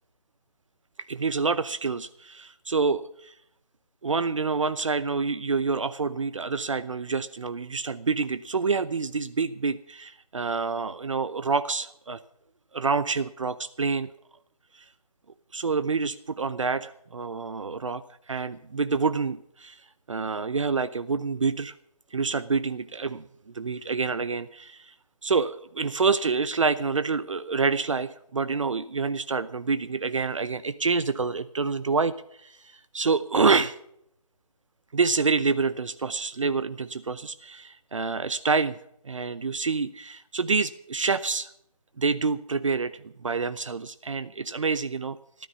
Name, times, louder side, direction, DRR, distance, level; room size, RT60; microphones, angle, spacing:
voice 1, 1.1-3.3 4.0-12.2 12.7-14.1 15.5-18.0 18.3-19.8 20.1-21.7 22.1-23.2 23.5-24.9 25.2-32.1 32.4-33.7 34.9-38.8 39.0-41.5 42.0-45.5, right 4 dB, 55° right, 14 dB, 0.8 m, -27 dB
14.0 x 12.5 x 6.3 m, 0.72 s
hypercardioid pair, 175°, 19 cm